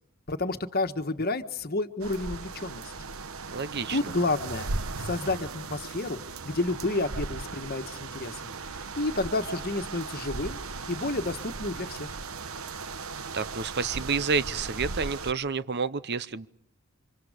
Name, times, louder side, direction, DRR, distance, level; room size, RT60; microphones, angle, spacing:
voice 1, 0.3-2.9 3.9-4.7 5.0-8.5 9.0-10.6 10.9-12.1, left 2 dB, 45° left, 8 dB, 1.5 m, -30 dB
sound 1, 2.0-15.3, right 4 dB, 70° right, 1.1 m, -37 dB
voice 2, 3.5-4.0 13.3-16.5, right 5 dB, 50° right, 15 dB, 0.8 m, -29 dB
29.5 x 26.5 x 5.1 m, 0.76 s
head